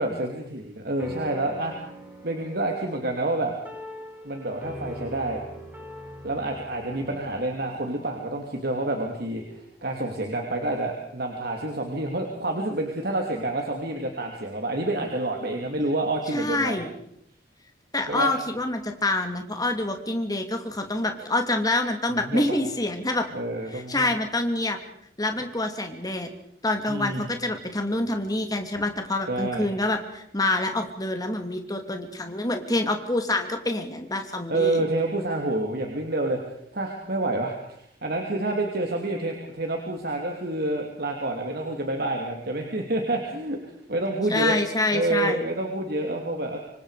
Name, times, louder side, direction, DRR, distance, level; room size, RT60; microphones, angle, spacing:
voice 1, 0.0-1.7 2.2-3.5 4.2-5.4 6.2-16.8 18.1-18.3 22.2-22.4 23.3-24.1 26.9-27.3 29.3-29.7 34.5-36.4 36.7-43.6 43.9-44.6 44.9-46.6, right 2 dB, 60° right, 2 dB, 2.9 m, -28 dB
sound 1, 1.0-9.7, left 1 dB, 10° right, 5.9 m, -42 dB
voice 2, 16.3-16.9 17.9-23.3 23.7-24.8 25.2-26.3 26.6-34.8 44.3-45.4, left 2 dB, 20° left, 5 dB, 2.8 m, -26 dB
26.0 x 24.5 x 5.1 m, 0.72 s
head